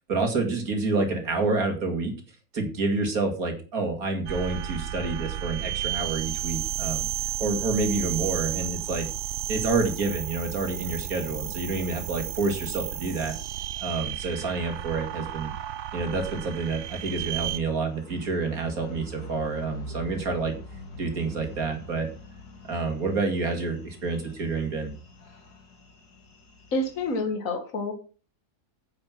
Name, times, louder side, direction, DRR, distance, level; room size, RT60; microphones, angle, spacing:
voice 1, 0.1-2.1 2.5-7.1 7.4-9.1 9.5-13.4 13.8-15.5 15.9-20.5 21.0-22.1 22.7-24.9, right 3 dB, 65° right, 4 dB, 2.8 m, -28 dB
sound 1, 4.3-17.6, right 12 dB, 85° right, 1.3 m, -33 dB
sound 2, 12.6-27.2, equal, 90° left, 2.7 m, -46 dB
voice 2, 26.7-27.9, left 2 dB, 60° left, 4 dB, 2.2 m, -28 dB
9.7 x 7.9 x 6.0 m, 0.37 s
omnidirectional pair, 1.6 m